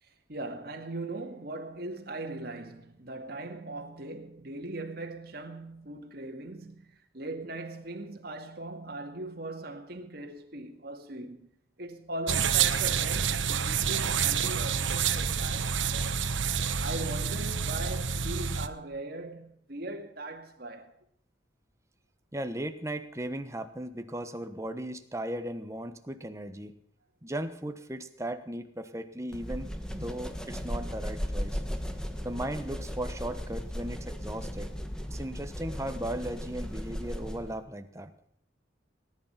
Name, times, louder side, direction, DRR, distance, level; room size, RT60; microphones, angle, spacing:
voice 1, 0.0-11.5 11.8-16.3 16.8-20.9, right 2 dB, 55° right, 2.3 m, -40 dB
sound 1, 12.3-18.7, right 7 dB, 85° right, 1.0 m, -28 dB
voice 2, 22.3-26.7 27.2-29.7 29.9-31.6 32.2-34.7 35.1-38.1, right 1 dB, 15° right, 1.1 m, -37 dB
sound 2, 29.3-37.6, equal, 5° left, 1.3 m, -36 dB
18.5 x 10.5 x 5.8 m
head